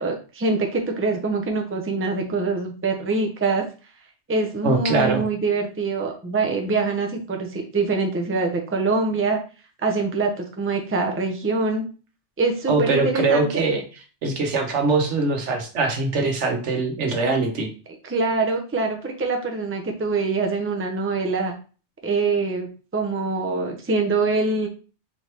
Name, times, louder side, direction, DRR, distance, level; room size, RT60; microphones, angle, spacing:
voice 1, 0.0-3.7 4.3-9.4 9.8-11.8 12.4-13.6 18.0-21.5 22.0-24.7, right 3 dB, 15° right, 3 dB, 0.5 m, -24 dB
voice 2, 4.6-5.2 12.7-13.8 14.2-17.7, right 3 dB, 80° right, 4 dB, 1.2 m, -22 dB
4.3 x 3.3 x 2.9 m, 0.36 s
omnidirectional pair, 1.2 m